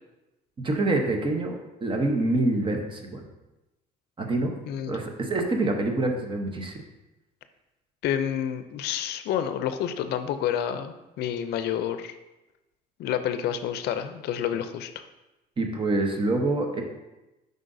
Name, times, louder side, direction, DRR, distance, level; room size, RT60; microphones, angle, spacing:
voice 1, 0.6-3.2 4.2-4.5 4.9-6.8 15.6-16.8, right 2 dB, 30° right, 3 dB, 0.9 m, -26 dB
voice 2, 4.7-5.0 8.0-12.1 13.0-14.9, left 9 dB, 75° left, 10 dB, 0.5 m, -29 dB
7.4 x 5.2 x 2.6 m, 1.0 s
cardioid pair, 110°, 17 cm